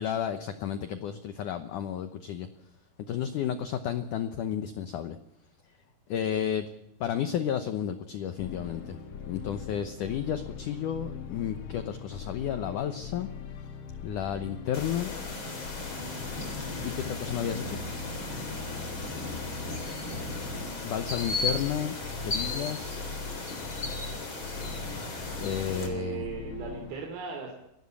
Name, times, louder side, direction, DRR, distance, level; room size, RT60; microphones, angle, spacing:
voice 1, 0.0-2.5 3.1-5.2 6.1-6.7 7.0-9.0 9.3-13.3 14.0-15.1 16.8-17.8 20.8-21.9 22.2-23.1 25.4-26.3, left 9 dB, 75° left, 9 dB, 1.9 m, -32 dB
sound 1, 8.4-27.0, left 5 dB, 60° left, 3.2 m, -41 dB
sound 2, 14.7-25.9, left 2 dB, 30° left, 4.0 m, -36 dB
voice 2, 25.7-27.5, right 6 dB, 65° right, 2 dB, 4.6 m, -37 dB
27.5 x 12.0 x 8.5 m, 0.84 s
omnidirectional pair, 4.9 m